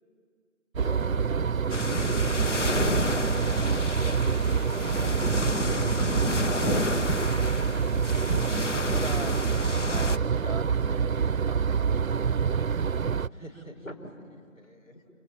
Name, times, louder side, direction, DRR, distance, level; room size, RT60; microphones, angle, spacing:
voice 1, 0.8-1.9 13.3-13.9 14.6-15.0, equal, 80° left, 5 dB, 5.4 m, -44 dB
sound 1, 0.8-13.3, right 6 dB, 90° right, 0.6 m, -26 dB
sound 2, 1.7-10.2, left 2 dB, 60° left, 1.2 m, -30 dB
voice 2, 4.0-5.7 9.9-10.5, left 1 dB, 45° left, -5 dB, 7.4 m, -50 dB
voice 3, 8.3-11.9, right 3 dB, 30° right, 17 dB, 0.8 m, -42 dB
29.0 x 27.5 x 7.3 m, 2.2 s
figure-of-eight pair, 170°, 40 cm